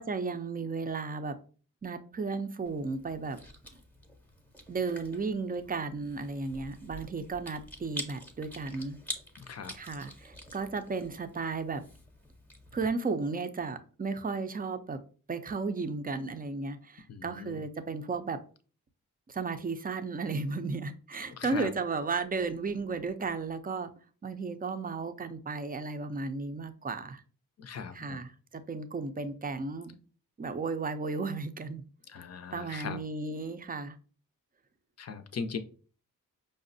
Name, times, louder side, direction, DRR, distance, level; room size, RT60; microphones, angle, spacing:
voice 1, 0.0-1.4 1.8-3.4 4.7-9.0 9.7-11.8 12.7-15.0 15.3-18.4 19.3-23.9 24.2-27.2 27.9-30.0 30.4-31.8 32.5-34.0, right 4 dB, 25° right, 0.5 m, -34 dB
Chewing mastication, 2.7-12.9, left 1 dB, 5° left, 0.8 m, -47 dB
voice 2, 17.1-17.6 21.4-21.7 27.6-28.2 32.1-33.0 35.0-35.6, left 5 dB, 45° left, 0.5 m, -39 dB
5.0 x 2.0 x 2.5 m
cardioid pair, 45°, 36 cm